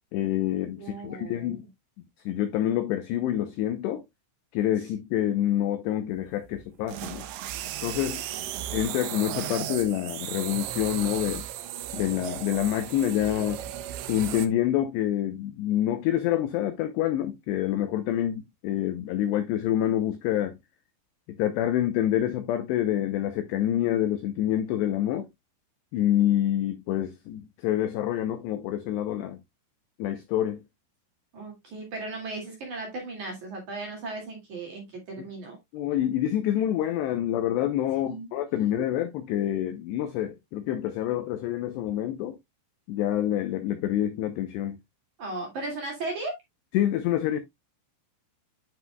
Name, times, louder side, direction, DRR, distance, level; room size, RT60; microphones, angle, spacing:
voice 1, 0.1-1.6 2.3-4.0 4.5-7.3 7.8-8.2 8.7-11.5 11.9-13.6 14.1-20.6 21.3-25.3 25.9-29.4 30.0-30.6 35.7-42.4 42.9-44.8 46.7-47.4, left 12 dB, 80° left, 2.4 m, -27 dB
voice 2, 0.8-1.6 4.8-4.9 31.3-35.6 38.0-38.8 45.2-46.3, right 3 dB, 50° right, 2.8 m, -36 dB
sound 1, 6.5-14.5, right 12 dB, 80° right, 2.7 m, -35 dB
11.0 x 5.6 x 2.2 m
omnidirectional pair, 5.9 m